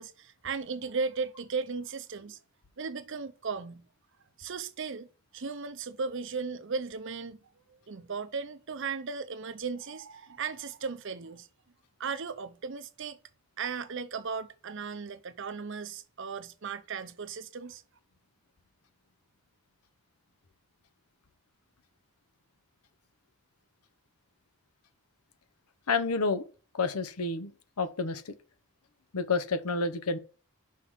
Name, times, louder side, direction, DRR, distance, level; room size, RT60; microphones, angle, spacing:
voice 1, 0.0-2.4 2.8-3.8 4.4-5.1 5.3-7.4 7.7-11.5 12.0-13.2 13.6-17.8, right 5 dB, 55° right, 0.7 m, -36 dB
voice 2, 25.9-26.4 26.7-27.5 27.8-28.3 29.1-30.2, left 4 dB, 85° left, 0.8 m, -29 dB
5.9 x 4.7 x 5.7 m
head